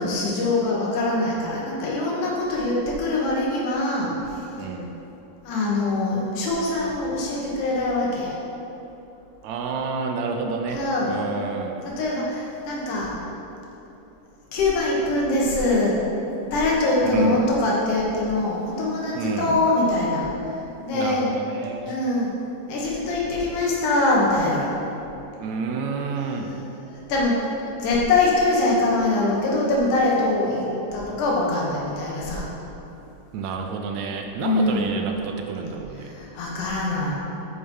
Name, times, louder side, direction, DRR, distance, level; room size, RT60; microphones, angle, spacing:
voice 1, 0.0-4.1 5.5-8.3 10.7-11.2 12.0-13.1 14.5-15.9 16.5-20.3 20.9-21.3 21.9-22.3 22.7-24.7 26.9-27.4 27.7-30.7 30.9-32.5 34.4-34.9 36.1-37.1, left 2 dB, 70° left, -4 dB, 2.9 m, -23 dB
voice 2, 4.5-4.9 9.4-11.8 17.0-17.4 19.1-19.6 20.9-22.0 25.4-26.6 33.3-36.1, right 4 dB, 80° right, 3 dB, 1.6 m, -29 dB
9.3 x 6.2 x 5.4 m, 3.0 s
omnidirectional pair, 3.8 m